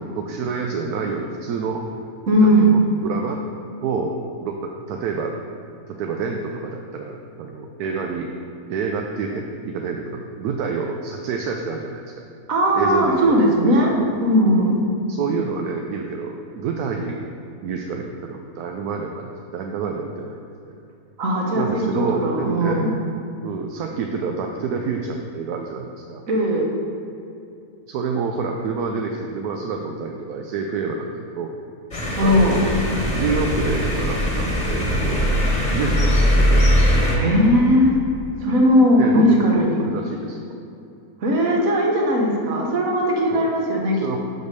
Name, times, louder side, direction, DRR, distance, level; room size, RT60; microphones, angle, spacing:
voice 1, 0.1-1.9 2.4-3.4 3.8-4.1 4.4-5.3 5.9-8.3 8.7-12.3 12.7-14.1 15.1-17.2 17.6-20.8 21.5-22.8 23.4-26.2 27.9-31.5 32.2-32.7 33.1-35.3 35.7-36.7 39.0-40.5 43.3-43.6 43.9-44.2, right 5 dB, 80° right, 2 dB, 1.1 m, -28 dB
voice 2, 2.3-2.8 12.5-13.9 14.2-14.8 21.2-21.8 22.1-22.9 26.3-26.7 32.2-32.6 37.1-38.0 38.4-39.8 41.2-44.2, equal, 65° right, 0 dB, 1.5 m, -18 dB
sound 1, 31.9-37.1, equal, 30° left, 1.4 m, -20 dB
6.2 x 5.3 x 6.5 m, 2.7 s
omnidirectional pair, 1.6 m